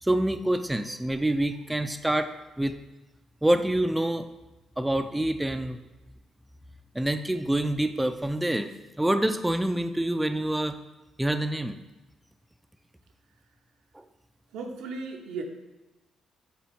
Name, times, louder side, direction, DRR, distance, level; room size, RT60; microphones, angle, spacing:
voice 1, 0.0-2.8 3.4-4.3 4.8-5.8 6.9-8.7 9.0-10.8 11.2-11.8 13.9-14.1, right 1 dB, 10° right, 8 dB, 0.3 m, -26 dB
voice 2, 14.5-15.4, right 4 dB, 90° right, 3 dB, 0.7 m, -35 dB
7.4 x 3.9 x 3.4 m, 1.0 s
cardioid pair, 90°, 0 cm